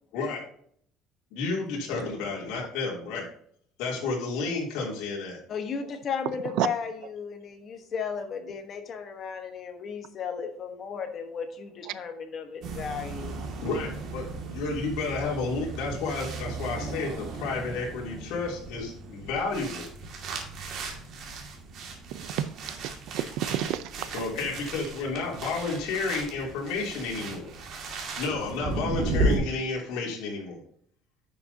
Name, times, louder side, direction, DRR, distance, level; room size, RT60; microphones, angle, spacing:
voice 1, 1.3-3.2 3.8-5.4 13.6-19.9 24.1-27.5 28.2-30.6, left 3 dB, 70° left, 2.9 m, -31 dB
voice 2, 5.5-13.4, left 6 dB, 35° left, 1.2 m, -35 dB
sound 1, 12.6-29.4, right 2 dB, 45° right, 2.1 m, -35 dB
voice 3, 22.1-24.1, right 12 dB, 65° right, 0.5 m, -31 dB
9.9 x 6.3 x 2.8 m
cardioid pair, 160°, 0 cm